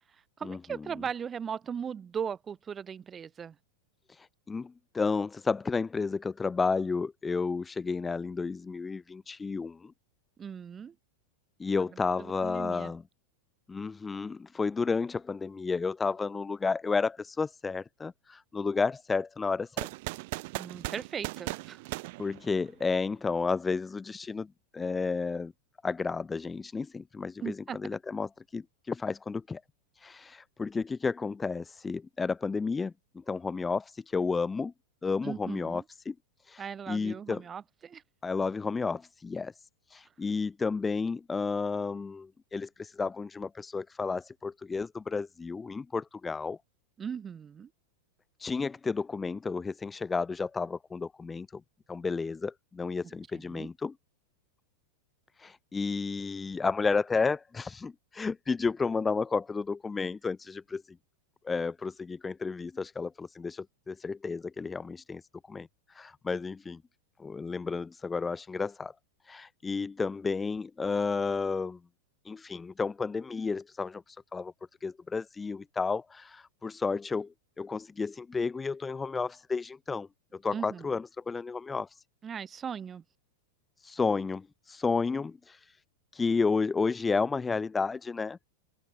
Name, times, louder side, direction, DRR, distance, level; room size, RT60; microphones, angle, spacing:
voice 1, 0.4-3.6 10.4-10.9 11.9-12.9 20.5-21.8 27.4-27.8 35.2-35.8 36.6-38.0 47.0-47.7 53.0-53.7 80.5-80.9 82.2-83.0, right 7 dB, 20° right, 5.4 m, -38 dB
voice 2, 4.1-9.9 11.6-13.0 13.7-19.9 22.2-24.5 24.7-25.5 25.8-29.6 30.0-32.9 33.3-34.7 35.0-36.1 36.5-37.4 38.2-46.6 48.4-51.6 51.9-53.9 55.4-60.8 61.4-65.2 65.5-66.8 67.2-68.9 69.2-71.8 72.2-74.5 74.8-77.3 77.6-82.0 83.8-85.8 86.1-88.4, left 4 dB, 15° left, 2.9 m, -32 dB
sound 1, 19.8-22.9, right 24 dB, 50° right, 2.5 m, -38 dB
open air
figure-of-eight pair, 90°, 0 cm